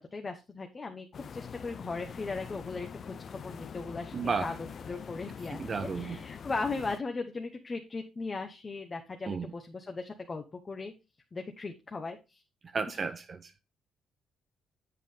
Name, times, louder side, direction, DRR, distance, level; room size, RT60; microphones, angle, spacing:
voice 1, 0.0-4.1 4.4-4.5 4.9-10.9 11.3-12.4, left 3 dB, 30° left, 1.0 m, -38 dB
sound 1, 1.1-7.0, left 7 dB, 50° left, 0.4 m, -44 dB
voice 2, 4.1-4.5 5.5-6.2 9.2-9.5 12.6-13.6, right 5 dB, 40° right, 0.6 m, -33 dB
7.8 x 7.4 x 3.2 m
cardioid pair, 90°, 0 cm